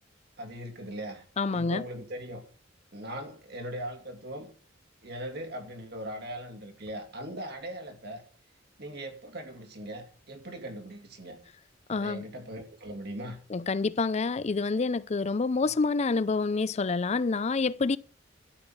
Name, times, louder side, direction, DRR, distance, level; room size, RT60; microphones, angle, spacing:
voice 1, 0.4-2.4 2.9-4.5 5.0-8.2 8.8-11.4 11.9-13.4 15.6-15.7, right 1 dB, 55° right, 2.5 m, -40 dB
voice 2, 1.4-1.8 11.9-12.3 13.5-18.0, left 4 dB, 35° left, 0.5 m, -27 dB
13.0 x 5.8 x 9.3 m
head